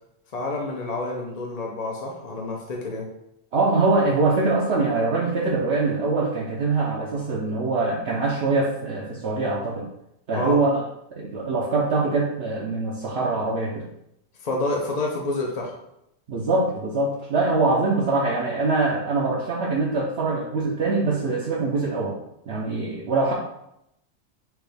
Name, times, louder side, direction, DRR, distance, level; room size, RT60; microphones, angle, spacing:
voice 1, 0.3-3.1 10.3-10.6 14.4-15.7, left 2 dB, 40° left, -1 dB, 0.6 m, -28 dB
voice 2, 3.5-9.9 10.3-10.8 11.2-13.8 16.3-22.2 22.5-23.3, right 3 dB, 60° right, -4 dB, 0.9 m, -23 dB
6.0 x 2.5 x 3.4 m, 0.80 s
omnidirectional pair, 1.3 m